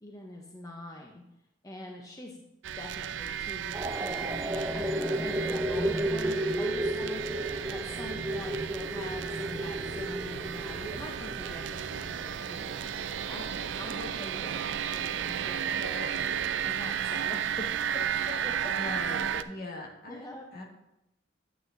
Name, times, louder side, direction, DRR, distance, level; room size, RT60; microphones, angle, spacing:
voice 1, 0.0-1.2 1.6-2.4 2.8-7.3 7.7-12.8 13.2-16.3 16.6-18.9 19.2-19.4 20.1-20.5, left 1 dB, 20° left, 0 dB, 0.7 m, -44 dB
sound 1, 2.6-19.4, right 8 dB, 70° right, 0.4 m, -34 dB
sound 2, 3.7-15.4, right 1 dB, 15° right, 0.6 m, -34 dB
voice 2, 18.8-20.2 20.5-20.6, left 2 dB, 50° left, 1 dB, 1.6 m, -40 dB
9.2 x 8.6 x 2.6 m, 0.86 s
head